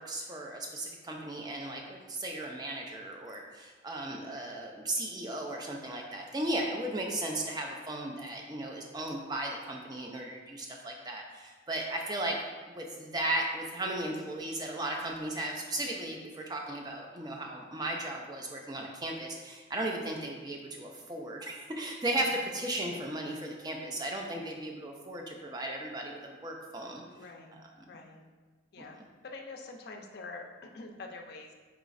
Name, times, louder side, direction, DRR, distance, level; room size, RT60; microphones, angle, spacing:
voice 1, 0.0-12.4 12.7-27.0 27.5-27.7 28.8-29.1, right 1 dB, 20° right, 1 dB, 0.4 m, -36 dB
voice 2, 27.2-27.6 27.9-28.2 28.7-29.0 29.2-31.5, left 3 dB, 50° left, 2 dB, 0.4 m, -45 dB
4.7 x 3.0 x 2.5 m, 1.3 s
head